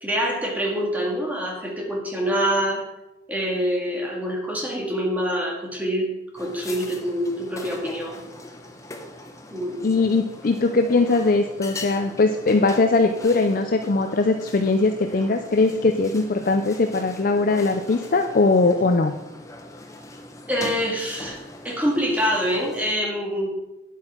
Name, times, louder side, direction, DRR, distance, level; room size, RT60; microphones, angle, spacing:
voice 1, 0.0-2.8 3.3-6.1 6.3-8.2 9.5-9.9 20.5-21.4 21.6-23.5, equal, 10° right, -2 dB, 2.0 m, -25 dB
sound 1, 6.4-23.0, left 2 dB, 15° left, 0.8 m, -41 dB
voice 2, 9.8-19.2, left 3 dB, 45° left, 6 dB, 0.5 m, -20 dB
9.8 x 8.3 x 4.4 m, 1.0 s
head